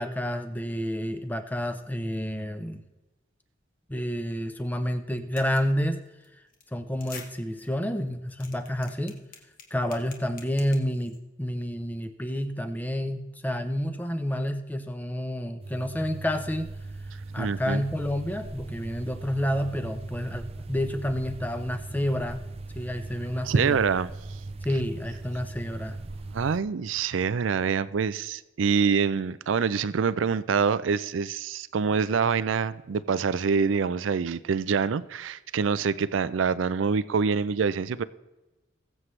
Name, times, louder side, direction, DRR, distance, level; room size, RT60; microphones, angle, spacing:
voice 1, 0.0-2.8 3.9-6.0 6.7-9.2 9.7-16.7 17.3-22.4 22.7-23.8 24.6-26.0, equal, 10° left, 0.8 m, -29 dB
sound 1, 5.4-5.7 6.1-6.3 6.5-6.6 6.9-7.3 7.6-7.7 8.1-11.2, left 5 dB, 45° left, 1.6 m, -46 dB
sound 2, 15.6-26.6, right 2 dB, 30° right, 0.5 m, -39 dB
voice 2, 17.4-17.8 23.4-24.1 26.3-38.0, right 5 dB, 85° right, 0.4 m, -25 dB
21.0 x 7.6 x 3.3 m
head